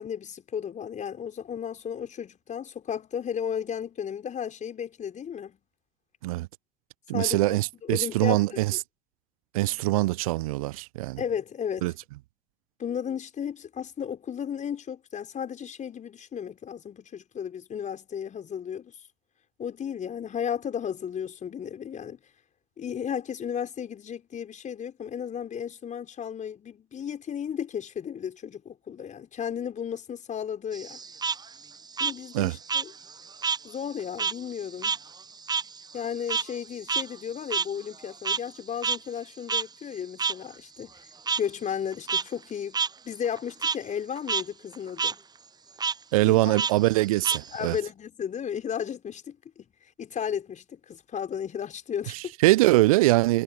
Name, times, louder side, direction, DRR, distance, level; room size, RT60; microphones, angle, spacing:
voice 1, 0.0-5.6 7.1-8.6 11.2-11.9 12.8-18.9 19.6-22.2 22.8-31.0 32.0-32.9 33.6-35.0 35.9-41.0 41.4-45.2 46.2-46.6 47.5-49.7 50.0-52.2, left 8 dB, 40° left, 5.2 m, -34 dB
voice 2, 7.1-8.8 9.5-11.2 11.8-11.9 32.3-32.5 46.1-47.8 52.1-53.4, right 19 dB, 70° right, 0.7 m, -23 dB
Frog, 30.7-33.7 34.0-38.6 38.8-39.0 39.5-39.6 40.2-40.3 41.3-41.4 41.9-42.2 42.7-42.9 43.2-43.8 44.2-44.4 44.7-45.1 45.8-45.9 46.6-47.8, right 5 dB, 20° right, 0.7 m, -29 dB
figure-of-eight pair, 55°, 18 cm